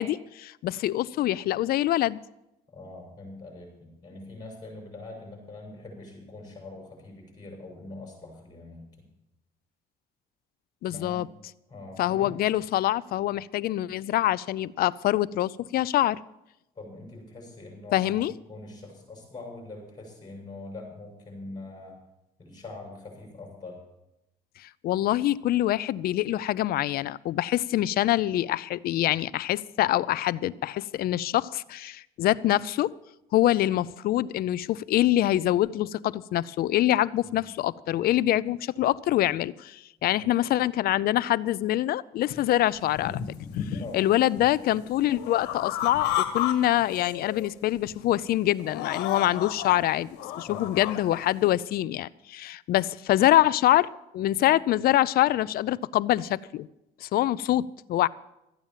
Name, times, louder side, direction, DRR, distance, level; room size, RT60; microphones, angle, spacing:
voice 1, 0.0-2.2 10.8-11.3 12.0-16.2 17.9-18.3 24.6-32.9 33.3-43.2 43.6-50.1 50.4-53.9 54.1-56.7 57.0-58.1, left 14 dB, 65° left, 20 dB, 0.5 m, -25 dB
voice 2, 2.7-8.8 10.9-11.3 11.7-12.4 16.7-18.1 18.5-22.0 22.4-23.8 37.2-37.4 40.2-40.3 43.8-44.0 50.4-50.7, left 2 dB, 25° left, 0 dB, 6.8 m, -43 dB
sound 1, 42.3-42.4 42.8-44.0 44.3-46.5 46.8-47.5 47.9-48.1 48.6-49.8 50.1-51.2, left 11 dB, 85° left, 1.5 m, -32 dB
14.0 x 8.9 x 7.3 m, 0.88 s
cardioid pair, 110°, 17 cm